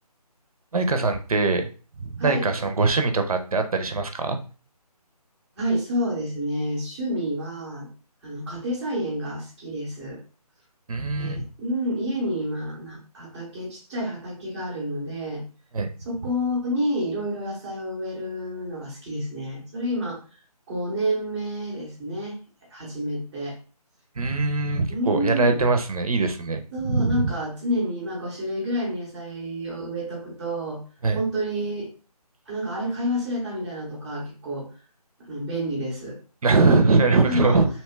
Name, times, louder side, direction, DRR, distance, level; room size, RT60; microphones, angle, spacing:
voice 1, 0.7-1.7 2.0-4.4 10.9-11.4 15.7-15.9 24.2-27.3 31.0-31.2 36.4-37.7, right 3 dB, 65° right, 6 dB, 0.5 m, -22 dB
voice 2, 5.6-7.9 8.2-10.2 11.2-15.4 16.0-20.2 20.7-22.4 22.7-23.6 24.9-25.6 26.7-30.8 31.1-31.9 32.5-34.7 35.2-36.2 37.1-37.6, equal, 5° right, -12 dB, 0.5 m, -29 dB
2.8 x 2.2 x 3.1 m, 0.37 s
figure-of-eight pair, 160°, 20 cm